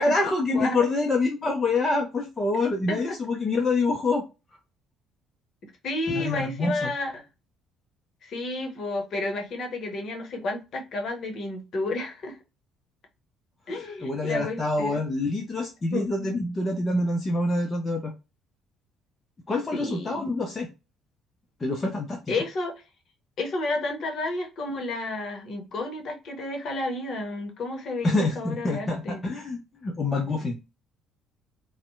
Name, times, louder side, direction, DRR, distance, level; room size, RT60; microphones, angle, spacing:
voice 1, 0.0-4.2 6.1-6.9 14.0-18.1 19.5-20.7 21.6-22.3 28.0-30.6, left 2 dB, 30° left, 2 dB, 0.5 m, -26 dB
voice 2, 0.5-0.9 2.9-3.2 5.6-7.2 8.2-12.4 13.7-15.0 15.9-16.4 19.7-20.3 22.3-22.7 23.4-29.2, left 2 dB, 50° left, 4 dB, 0.8 m, -31 dB
2.6 x 2.1 x 2.3 m, 0.27 s
figure-of-eight pair, 50°, 0 cm